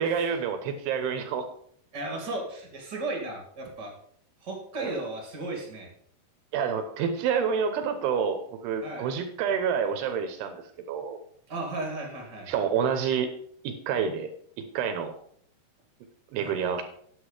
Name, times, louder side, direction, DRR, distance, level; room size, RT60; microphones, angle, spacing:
voice 1, 0.0-1.5 4.8-5.0 6.5-11.2 12.5-13.3 13.6-14.3 14.6-15.1 16.3-16.8, right 7 dB, 75° right, 7 dB, 2.7 m, -28 dB
voice 2, 1.9-3.9 4.4-5.9 8.8-9.1 11.5-12.5 16.4-16.7, right 2 dB, 35° right, 1 dB, 1.8 m, -35 dB
10.0 x 8.1 x 4.9 m, 0.63 s
omnidirectional pair, 5.1 m